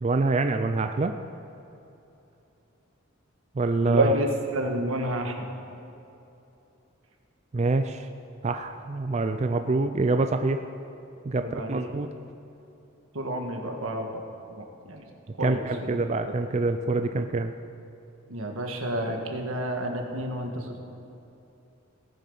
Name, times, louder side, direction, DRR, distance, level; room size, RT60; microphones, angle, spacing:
voice 1, 0.0-1.1 3.6-4.1 7.5-8.1 8.4-10.6 11.2-12.1 15.4-17.5, right 3 dB, 30° right, 7 dB, 0.4 m, -26 dB
voice 2, 3.8-5.5 11.4-12.0 13.1-14.1 14.6-15.0 15.4-16.0 18.3-20.8, right 1 dB, 85° right, 3 dB, 1.5 m, -29 dB
18.0 x 7.4 x 5.5 m, 2.9 s
head